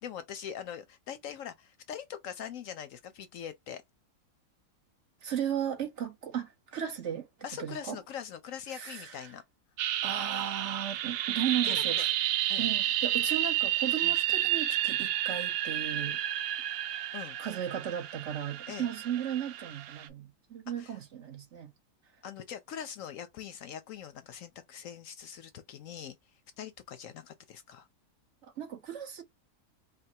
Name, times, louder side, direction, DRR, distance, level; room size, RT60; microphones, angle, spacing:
voice 1, 0.0-3.8 7.4-9.4 11.6-12.1 12.5-12.7 14.0-14.1 17.1-17.4 18.7-18.9 20.8-21.0 22.2-26.2 26.6-27.9, left 8 dB, 70° left, 0.9 m, -42 dB
voice 2, 5.2-7.3 7.6-8.0 8.7-9.3 10.0-12.1 12.6-16.2 17.4-21.7 28.6-29.2, right 9 dB, 55° right, 0.9 m, -35 dB
sound 1, 9.8-20.1, right 12 dB, 85° right, 1.2 m, -31 dB
5.1 x 2.2 x 2.7 m
omnidirectional pair, 1.6 m